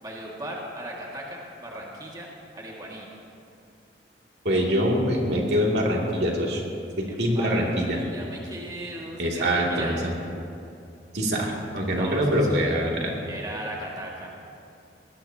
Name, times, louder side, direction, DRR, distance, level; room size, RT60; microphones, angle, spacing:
voice 1, 0.0-3.1 7.1-10.0 12.0-12.6 13.3-14.3, right 1 dB, 20° right, -3 dB, 2.0 m, -37 dB
voice 2, 4.4-6.6 7.0-8.0 9.2-9.9 11.1-13.1, equal, 70° right, -2 dB, 2.6 m, -24 dB
21.5 x 19.0 x 2.9 m, 2.6 s
head